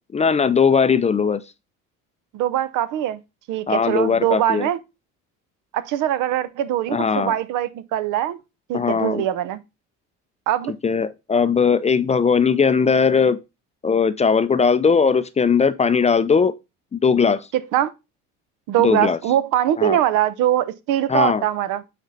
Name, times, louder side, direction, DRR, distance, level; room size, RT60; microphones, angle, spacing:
voice 1, 0.1-1.4 3.7-4.7 6.9-7.3 8.7-9.2 10.8-13.4 13.8-16.5 16.9-17.5 18.8-19.2 19.8-20.0 21.1-21.4, left 5 dB, 20° left, 0.5 m, -19 dB
voice 2, 2.3-3.2 3.5-4.8 5.7-8.4 8.7-9.6 10.5-10.8 17.5-17.9 18.7-21.8, right 12 dB, 70° right, 0.8 m, -22 dB
8.1 x 4.3 x 3.9 m
supercardioid pair, 95°, 32 cm